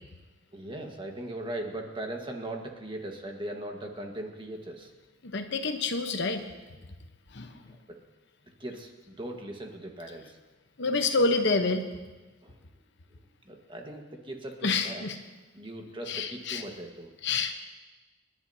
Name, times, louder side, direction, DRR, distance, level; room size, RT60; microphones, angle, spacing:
voice 1, 0.5-4.9 8.6-10.4 12.4-12.6 13.1-13.2 13.4-15.0 15.5-17.1, right 1 dB, 25° right, 2 dB, 1.4 m, -39 dB
voice 2, 5.2-6.4 7.3-7.6 10.8-11.8 14.6-15.2 16.1-16.6 17.2-17.5, left 3 dB, 65° left, 6 dB, 1.0 m, -27 dB
28.0 x 11.0 x 2.8 m, 1.2 s
head